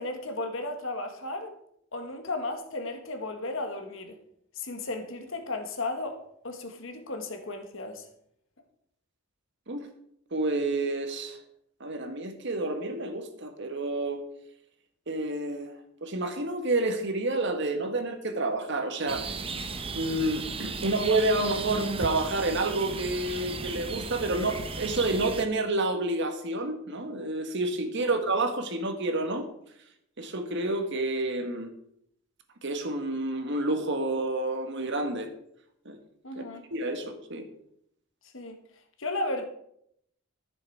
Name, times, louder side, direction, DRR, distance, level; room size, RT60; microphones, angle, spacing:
voice 1, 0.0-1.5 1.9-4.2 4.5-6.2 6.4-8.0 28.0-28.2 36.2-36.6 38.3-38.6 39.0-39.4, left 2 dB, 65° left, 5 dB, 1.6 m, -34 dB
voice 2, 10.3-11.4 11.8-14.2 15.1-15.7 16.0-19.3 19.9-29.5 30.2-31.7 32.6-35.3 35.8-36.0 36.7-37.5, right 2 dB, 60° right, 6 dB, 1.7 m, -29 dB
sound 1, 19.1-25.4, right 3 dB, 25° right, 0.8 m, -35 dB
14.0 x 7.0 x 4.7 m, 0.71 s
head